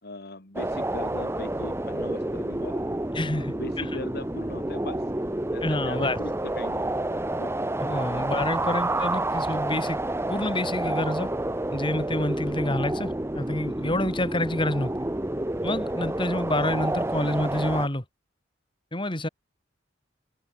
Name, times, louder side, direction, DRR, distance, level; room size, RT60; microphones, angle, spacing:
voice 1, 0.0-2.8 3.2-5.0 5.5-7.8, left 2 dB, 55° left, 2.8 m, -40 dB
sound 1, 0.6-17.9, right 1 dB, 15° right, 0.9 m, -29 dB
voice 2, 3.1-3.9 5.6-6.2 7.8-10.0 10.3-11.3 11.7-14.9 15.6-18.0 18.9-19.3, left 1 dB, 25° left, 3.5 m, -28 dB
head